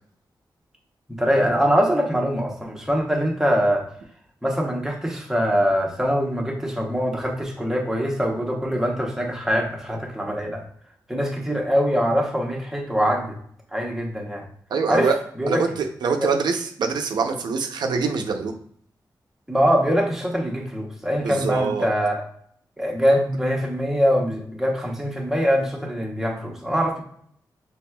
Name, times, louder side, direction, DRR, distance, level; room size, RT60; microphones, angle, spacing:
voice 1, 1.1-3.9 4.4-10.6 11.1-13.4 13.7-14.4 14.9-15.1 15.4-15.6 16.2-16.3 19.5-22.2 22.8-27.0, equal, 5° right, -1 dB, 0.8 m, -23 dB
voice 2, 14.7-15.1 15.5-18.5 21.2-21.9, right 5 dB, 80° right, 5 dB, 0.6 m, -24 dB
6.0 x 3.4 x 2.2 m, 0.62 s
wide cardioid pair, 165°, 7 cm